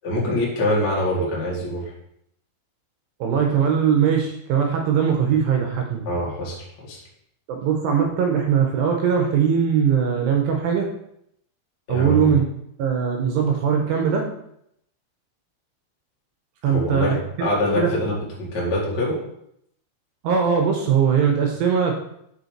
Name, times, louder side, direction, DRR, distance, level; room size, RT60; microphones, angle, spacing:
voice 1, 0.0-1.9 6.0-7.0 11.9-12.3 16.6-19.2, left 1 dB, 50° left, -5 dB, 1.2 m, -24 dB
voice 2, 3.2-6.0 7.5-10.9 11.9-12.4 12.8-14.2 16.6-17.5 17.8-17.9 20.2-21.9, right 7 dB, 80° right, 2 dB, 2.8 m, -20 dB
6.4 x 5.5 x 4.5 m, 0.75 s
omnidirectional pair, 5.4 m